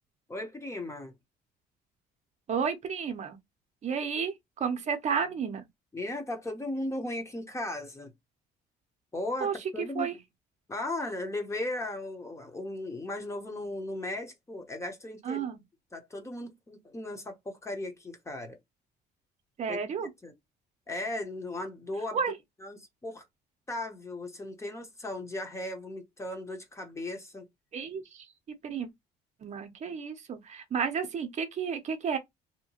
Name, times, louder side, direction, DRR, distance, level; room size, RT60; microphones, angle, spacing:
voice 1, 0.3-1.1 5.9-8.1 9.1-10.1 10.7-15.5 15.9-18.6 19.7-20.3 20.9-22.2 22.6-23.2 23.7-27.5, left 1 dB, 15° left, 0.8 m, -37 dB
voice 2, 2.5-3.4 3.8-5.7 9.4-9.5 10.0-10.2 15.2-15.6 19.6-20.1 22.1-22.3 27.7-28.3 28.6-28.9 29.4-32.2, right 6 dB, 45° right, 0.7 m, -32 dB
2.8 x 2.1 x 2.8 m
cardioid pair, 110°, 17 cm